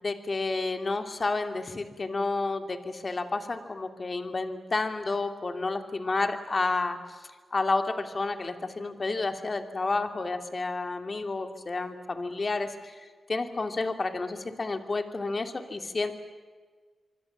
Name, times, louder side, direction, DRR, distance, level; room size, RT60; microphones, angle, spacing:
voice 1, 0.0-7.2 7.5-13.0 13.3-16.1, left 3 dB, 40° left, 7 dB, 2.7 m, -30 dB
26.0 x 25.0 x 7.4 m, 1.5 s
wide cardioid pair, 90°, 0 cm